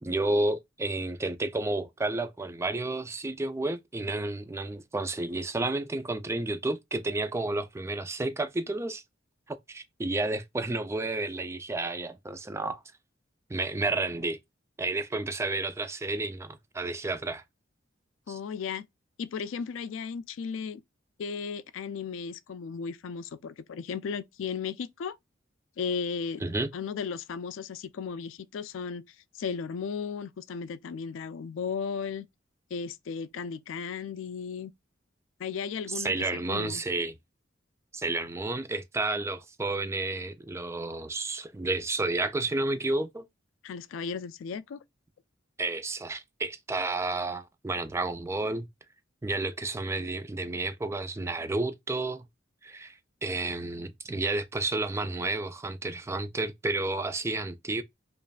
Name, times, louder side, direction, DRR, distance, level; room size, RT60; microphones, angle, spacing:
voice 1, 0.0-9.0 9.5-12.8 13.5-14.4 14.8-17.4 18.3-18.4 26.4-26.7 35.9-37.1 37.9-43.2 45.6-48.7 49.2-52.3 52.6-53.0 53.2-57.8, right 2 dB, 15° right, 0.4 m, -31 dB
voice 2, 18.3-18.9 19.2-20.8 21.2-25.2 25.8-26.4 26.7-29.0 29.3-32.3 32.7-34.7 35.4-36.1 36.5-36.8 43.6-44.8, left 6 dB, 80° left, 0.3 m, -35 dB
5.1 x 2.5 x 2.3 m
head